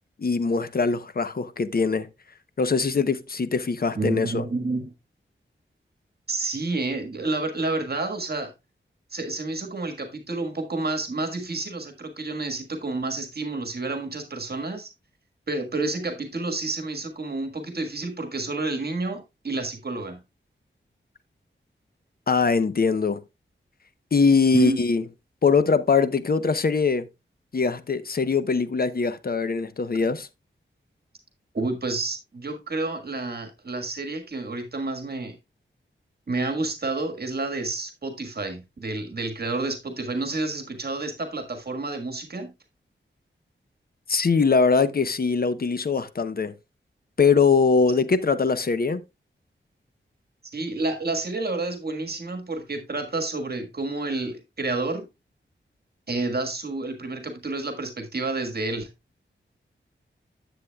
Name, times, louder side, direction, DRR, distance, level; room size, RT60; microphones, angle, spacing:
voice 1, 0.2-2.1 2.6-4.4 22.3-23.2 24.1-25.0 25.4-27.1 27.5-30.3 44.1-46.5 47.2-49.0, left 5 dB, 50° left, 0.7 m, -22 dB
voice 2, 4.0-4.9 6.3-8.5 9.1-14.9 15.5-20.2 24.5-24.8 31.5-35.4 36.3-42.5 50.5-55.1 56.1-58.9, right 2 dB, 50° right, 1.6 m, -29 dB
9.8 x 8.2 x 2.3 m
wide cardioid pair, 75°, 20 cm